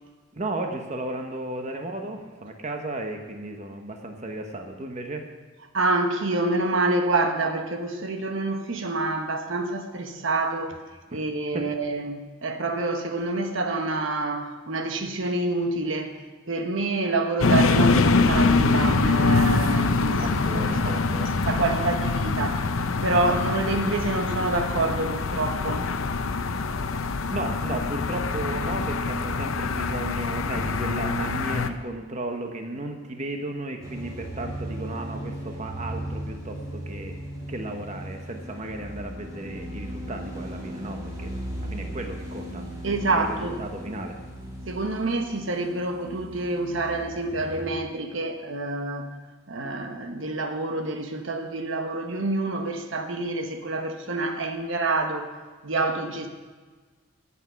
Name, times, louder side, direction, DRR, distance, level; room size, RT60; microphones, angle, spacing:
voice 1, 0.3-5.2 11.1-11.2 11.5-11.7 20.2-21.4 26.8-26.9 27.3-37.2 37.5-41.3 41.6-42.6 43.1-44.2, right 1 dB, 35° right, 4 dB, 1.0 m, -34 dB
voice 2, 5.7-10.8 11.1-16.2 16.5-21.0 21.5-22.7 23.0-25.9 42.8-43.6 44.7-49.1 49.5-55.4 55.6-56.3, right 2 dB, 70° right, 5 dB, 1.1 m, -27 dB
sound 1, 17.4-31.7, left 3 dB, 85° left, 0.7 m, -24 dB
sound 2, 33.8-47.7, right 1 dB, 15° right, 2.5 m, -37 dB
14.0 x 8.5 x 5.7 m, 1.4 s
head